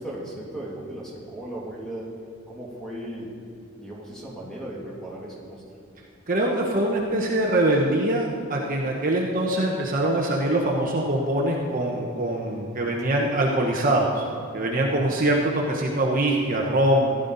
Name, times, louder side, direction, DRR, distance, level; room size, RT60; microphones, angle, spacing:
voice 1, 0.0-2.1 2.5-3.3 3.8-5.6 13.1-13.5, right 1 dB, 5° left, -5 dB, 2.6 m, -37 dB
voice 2, 6.3-14.2 14.5-17.2, right 1 dB, 40° right, -1 dB, 1.1 m, -23 dB
15.5 x 11.0 x 4.1 m, 2.5 s
head